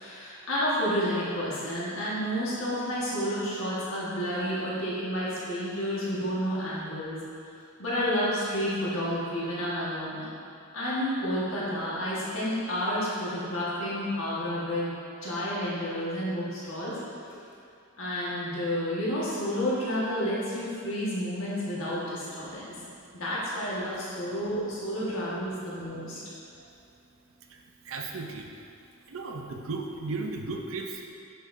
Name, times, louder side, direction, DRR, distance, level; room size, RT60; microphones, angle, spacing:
voice 1, 0.0-7.1 7.8-10.2 10.7-14.9 15.2-17.0 17.3-17.4 18.0-22.8 23.1-26.2, equal, 70° left, -8 dB, 1.6 m, -30 dB
voice 2, 27.5-28.5 29.1-31.1, right 3 dB, 70° right, 2 dB, 0.6 m, -36 dB
7.7 x 6.6 x 2.7 m, 2.5 s
head